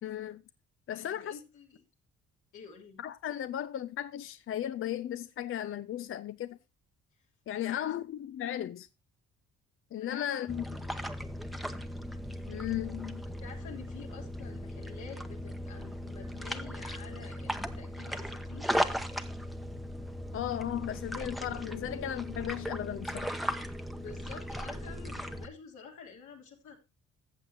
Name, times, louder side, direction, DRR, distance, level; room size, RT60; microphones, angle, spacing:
voice 1, 0.0-0.4 0.9-1.4 3.0-6.6 7.5-8.9 9.9-10.6 12.5-13.2 20.3-23.4, left 11 dB, 45° left, 0.4 m, -36 dB
voice 2, 0.9-1.8 2.5-3.0 7.5-7.8 10.0-10.3 10.6-10.7 13.4-18.7 24.0-26.8, left 6 dB, 75° left, 3.0 m, -49 dB
sound 1, 10.5-25.5, equal, ahead, 0.8 m, -37 dB
14.5 x 7.4 x 2.8 m
cardioid pair, 90°, 30 cm